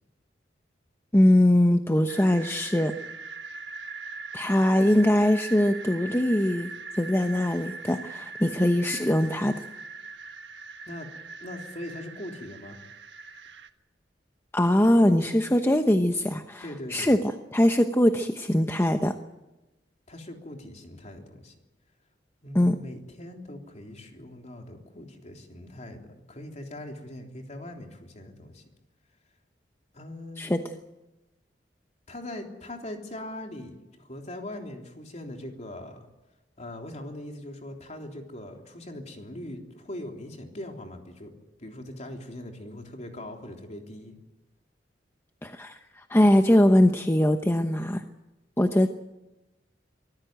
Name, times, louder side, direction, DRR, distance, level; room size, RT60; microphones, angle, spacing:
voice 1, 1.1-2.9 4.3-6.7 7.0-9.5 14.5-17.2 17.5-19.1 22.5-22.8 30.4-30.6 45.4-48.0 48.6-48.9, left 1 dB, 15° left, 6 dB, 0.9 m, -22 dB
sound 1, 2.1-13.7, right 3 dB, 75° right, 1.4 m, -41 dB
voice 2, 11.4-12.8 16.6-17.2 20.1-21.5 22.4-28.6 29.9-30.7 32.1-36.1 36.6-41.3 41.6-44.2, left 1 dB, 40° left, 2 dB, 3.5 m, -41 dB
24.0 x 15.0 x 9.1 m, 1.0 s
head